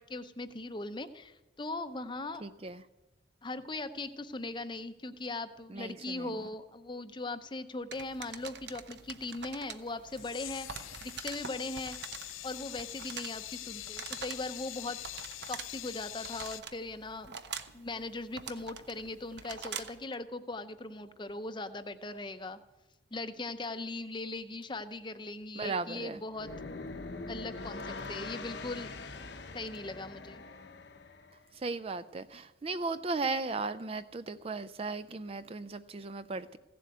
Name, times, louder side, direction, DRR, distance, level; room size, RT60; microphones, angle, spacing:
voice 1, 0.0-2.5 3.4-12.0 12.4-15.0 15.5-17.4 17.7-22.6 23.1-26.5 27.3-28.9 29.5-30.4, left 2 dB, 25° left, 10 dB, 0.6 m, -39 dB
voice 2, 2.4-2.8 5.7-6.4 25.6-26.2 31.5-36.6, right 3 dB, 30° right, 12 dB, 0.4 m, -36 dB
sound 1, 7.9-20.0, right 6 dB, 60° right, 0.9 m, -45 dB
sound 2, 10.1-16.6, left 15 dB, 90° left, 0.5 m, -44 dB
sound 3, 26.3-31.4, left 3 dB, 60° left, 0.9 m, -43 dB
16.0 x 7.7 x 9.3 m, 1.1 s
head